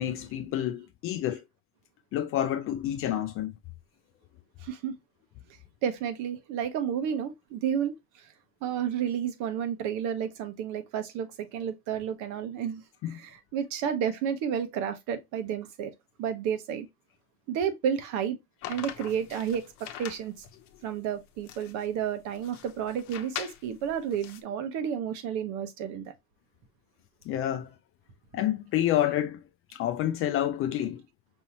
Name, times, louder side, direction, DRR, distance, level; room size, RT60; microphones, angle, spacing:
voice 1, 0.0-1.4 2.1-3.5 13.0-13.2 27.3-27.7 28.3-29.4 29.7-31.0, left 11 dB, 45° left, 0.4 m, -28 dB
voice 2, 4.6-4.9 5.8-7.9 8.6-15.9 16.2-16.9 17.5-18.4 18.7-20.3 20.8-26.1, right 8 dB, 65° right, 1.1 m, -31 dB
sound 1, 18.6-24.4, left 11 dB, 60° left, 0.8 m, -42 dB
5.5 x 2.8 x 2.9 m
cardioid pair, 125°, 31 cm